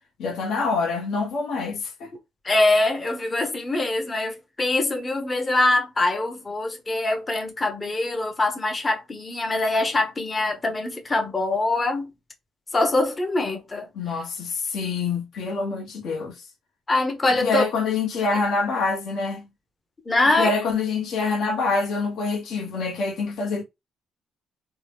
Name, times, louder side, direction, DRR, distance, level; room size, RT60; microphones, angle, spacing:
voice 1, 0.2-2.1 13.9-16.4 17.4-19.5 20.4-23.6, left 4 dB, 80° left, 1.0 m, -26 dB
voice 2, 2.4-12.1 12.7-13.9 16.9-17.6 20.1-20.5, left 2 dB, 25° left, 0.6 m, -23 dB
2.8 x 2.1 x 3.3 m
cardioid pair, 90°, 0 cm